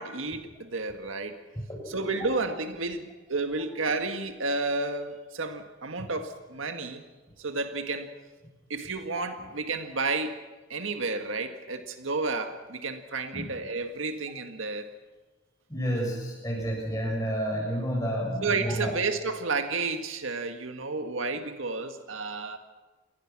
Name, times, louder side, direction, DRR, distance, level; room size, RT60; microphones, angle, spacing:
voice 1, 0.0-1.4 1.9-7.0 7.4-8.1 8.7-10.4 10.7-14.9 18.4-22.6, right 3 dB, 90° right, 7 dB, 1.9 m, -31 dB
voice 2, 1.5-2.0 13.3-13.5 15.7-18.9, equal, 15° left, -1 dB, 7.6 m, -30 dB
28.0 x 20.5 x 6.2 m, 1.2 s
head